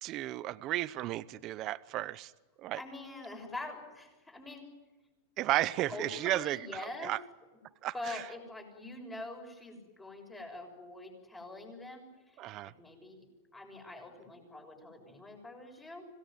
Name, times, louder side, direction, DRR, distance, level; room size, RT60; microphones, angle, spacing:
voice 1, 0.0-2.3 2.6-2.8 5.4-6.7 7.0-7.2 7.8-8.2 12.4-12.7, right 15 dB, 35° right, 15 dB, 0.8 m, -33 dB
voice 2, 2.7-4.7 5.9-7.1 7.9-16.1, left 2 dB, 10° left, 2 dB, 6.7 m, -45 dB
26.0 x 18.5 x 9.3 m, 1.1 s
supercardioid pair, 160°, 0 cm